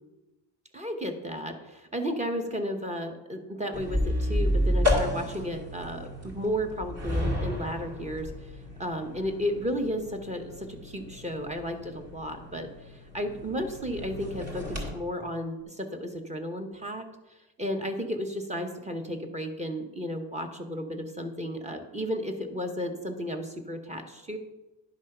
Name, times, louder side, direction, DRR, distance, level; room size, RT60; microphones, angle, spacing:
voice 1, 0.7-8.3 8.8-17.0 17.6-24.4, equal, 15° right, 5 dB, 0.9 m, -33 dB
sound 1, 3.7-14.9, left 1 dB, 35° right, 2.3 m, -32 dB
11.0 x 6.3 x 5.5 m, 1.1 s
wide cardioid pair, 165°, 45 cm